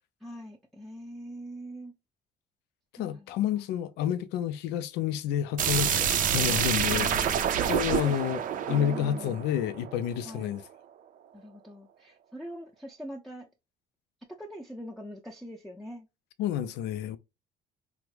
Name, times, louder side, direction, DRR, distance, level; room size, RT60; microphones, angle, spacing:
voice 1, 0.2-1.9 3.0-3.3 6.9-7.4 8.0-8.2 8.7-9.4 10.2-10.6 11.3-13.5 14.4-16.1, equal, ahead, 0.6 m, -42 dB
voice 2, 3.0-7.3 7.7-8.4 8.7-10.6 16.4-17.2, left 10 dB, 90° left, 0.4 m, -29 dB
sound 1, 5.6-10.3, right 8 dB, 55° right, 0.5 m, -28 dB
3.3 x 2.0 x 3.1 m
cardioid pair, 110°, 17 cm